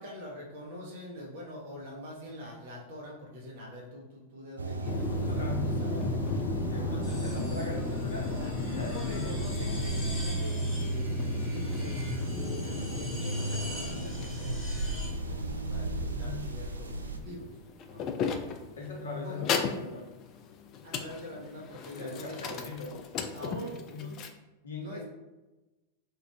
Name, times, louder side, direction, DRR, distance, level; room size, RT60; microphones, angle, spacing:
voice 1, 0.0-6.1 6.7-7.0 8.3-8.5 8.8-12.2 12.5-17.6 17.9-18.1 19.2-19.5 20.8-22.6 23.3-23.7 24.8-25.0, left 1 dB, 55° right, -2 dB, 0.9 m, -45 dB
sound 1, 4.6-17.2, right 2 dB, 75° right, 0.3 m, -34 dB
sound 2, 4.8-24.3, left 5 dB, 35° left, 0.3 m, -36 dB
voice 2, 5.3-6.2 6.7-8.3 8.7-9.4 15.9-16.5 18.8-20.1 22.0-23.0 23.4-24.2 24.6-25.0, left 2 dB, 65° left, 0 dB, 0.8 m, -40 dB
sound 3, 7.0-15.1, equal, 10° left, 1.2 m, -42 dB
3.1 x 2.4 x 3.4 m, 1.1 s
figure-of-eight pair, 90°, 0 cm